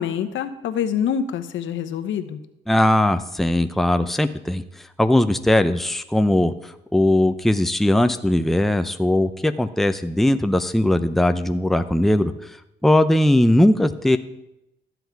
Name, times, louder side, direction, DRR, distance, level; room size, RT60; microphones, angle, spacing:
voice 1, 0.0-2.4, left 8 dB, 75° left, 10 dB, 0.9 m, -26 dB
voice 2, 2.7-4.6 5.0-12.3 12.8-14.2, left 1 dB, ahead, 9 dB, 0.6 m, -19 dB
13.0 x 7.9 x 4.6 m, 0.85 s
cardioid pair, 90°, 20 cm